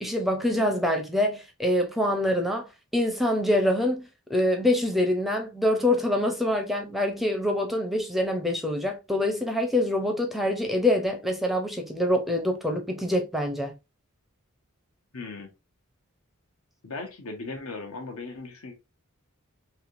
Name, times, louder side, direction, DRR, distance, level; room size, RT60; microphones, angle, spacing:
voice 1, 0.0-2.7 2.9-13.7, left 1 dB, ahead, 0.5 m, -25 dB
voice 2, 15.1-15.5 16.8-18.7, left 3 dB, 75° left, 0.9 m, -37 dB
3.2 x 2.7 x 2.5 m
head